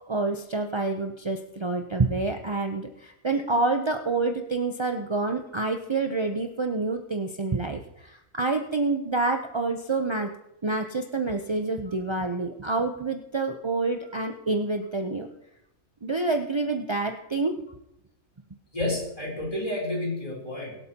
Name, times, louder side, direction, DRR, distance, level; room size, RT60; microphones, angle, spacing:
voice 1, 0.0-10.3 10.6-15.3 16.0-17.6, right 3 dB, 40° right, 4 dB, 0.4 m, -27 dB
voice 2, 18.7-20.8, left 1 dB, 20° left, -4 dB, 3.3 m, -30 dB
23.0 x 8.2 x 2.9 m, 0.83 s
omnidirectional pair, 1.6 m